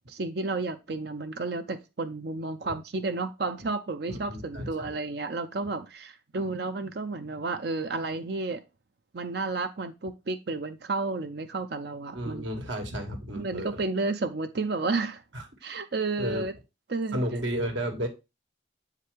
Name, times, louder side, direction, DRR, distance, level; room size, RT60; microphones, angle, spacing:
voice 1, 0.1-8.6 9.1-12.5 13.3-15.2 15.6-16.5 16.9-17.2, right 3 dB, 55° right, 0.6 m, -31 dB
voice 2, 4.1-5.0 12.1-13.8 15.3-15.5 16.2-16.5 17.1-18.1, equal, 80° right, 1.8 m, -33 dB
7.6 x 4.9 x 3.2 m
head